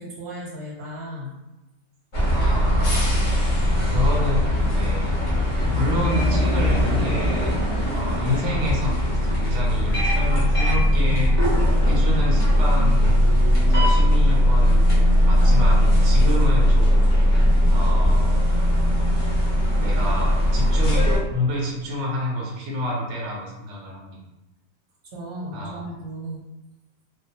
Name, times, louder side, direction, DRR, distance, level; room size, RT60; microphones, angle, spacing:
voice 1, 0.0-1.4 25.1-26.4, right 1 dB, 85° right, -4 dB, 1.3 m, -35 dB
sound 1, 2.1-21.2, equal, 40° left, 0.4 m, -19 dB
voice 2, 2.2-3.4 3.8-5.2 5.6-11.4 11.9-13.2 13.6-14.9 15.2-17.1 17.7-18.4 19.7-24.2 25.5-25.8, left 1 dB, 65° right, -3 dB, 0.9 m, -29 dB
2.3 x 2.3 x 2.8 m, 0.99 s
omnidirectional pair, 1.4 m